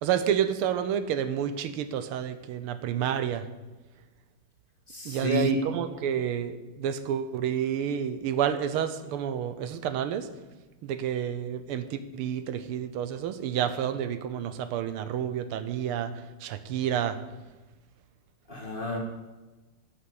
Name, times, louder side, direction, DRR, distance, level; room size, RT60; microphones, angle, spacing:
voice 1, 0.0-3.5 5.0-10.3 10.8-17.2, right 9 dB, 80° right, 11 dB, 1.6 m, -29 dB
voice 2, 4.9-5.6 18.5-19.0, left 1 dB, 25° left, 0 dB, 1.8 m, -30 dB
11.5 x 6.6 x 7.9 m, 1.2 s
omnidirectional pair, 2.4 m